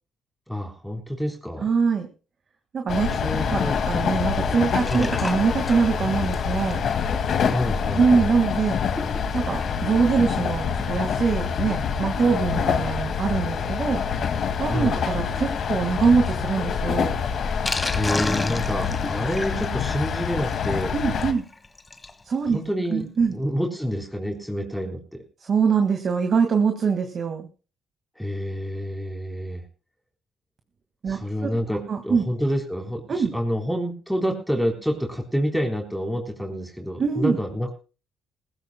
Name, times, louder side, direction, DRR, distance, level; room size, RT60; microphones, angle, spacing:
voice 1, 0.5-1.7 3.2-3.8 4.9-5.1 7.5-8.3 14.7-15.0 17.9-20.9 22.5-25.2 28.2-29.7 31.1-37.7, equal, ahead, 2 dB, 3.7 m, -28 dB
voice 2, 1.6-2.1 2.7-3.1 3.5-6.8 8.0-8.8 9.3-14.0 14.6-17.1 20.9-21.4 22.3-22.6 22.9-23.3 25.4-27.5 31.0-31.5 31.9-32.2 33.1-33.3 37.0-37.4, right 5 dB, 50° right, 6 dB, 1.9 m, -23 dB
sound 1, 2.9-21.3, left 6 dB, 60° left, 2.0 m, -26 dB
Sink (filling or washing), 4.2-22.2 22.6-22.7 22.9-23.0 23.3-23.4, left 3 dB, 25° left, 1.3 m, -36 dB
20.5 x 15.0 x 2.2 m, 0.34 s
cardioid pair, 90°, 0 cm